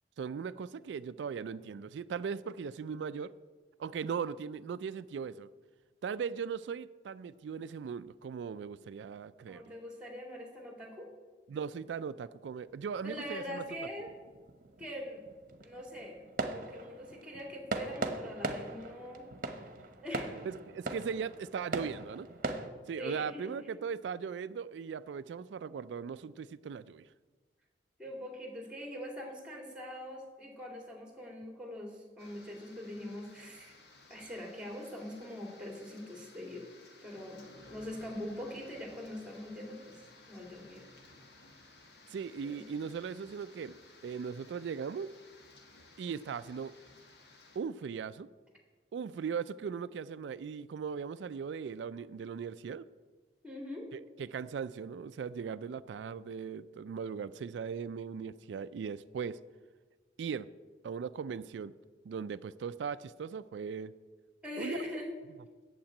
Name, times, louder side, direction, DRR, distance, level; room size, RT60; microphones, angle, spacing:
voice 1, 0.2-3.3 3.8-5.5 6.0-9.6 11.5-13.6 20.4-22.3 22.9-27.0 42.1-45.1 46.0-46.7 47.6-48.3 48.9-52.9 53.9-59.4 60.2-60.5 60.8-61.7 62.0-63.9 64.6-64.8, right 6 dB, 90° right, 14 dB, 0.3 m, -38 dB
voice 2, 9.5-11.1 13.0-14.1 14.8-15.2 15.6-19.3 20.0-20.4 22.9-23.7 28.0-33.8 34.1-36.6 37.0-40.8 42.4-42.6 53.4-53.9 64.4-65.1, left 1 dB, 5° right, 2 dB, 2.4 m, -43 dB
sound 1, 12.7-22.7, right 2 dB, 50° right, 1.0 m, -40 dB
sound 2, 32.2-47.6, left 2 dB, 70° left, 1.7 m, -57 dB
8.7 x 7.4 x 8.9 m, 1.4 s
head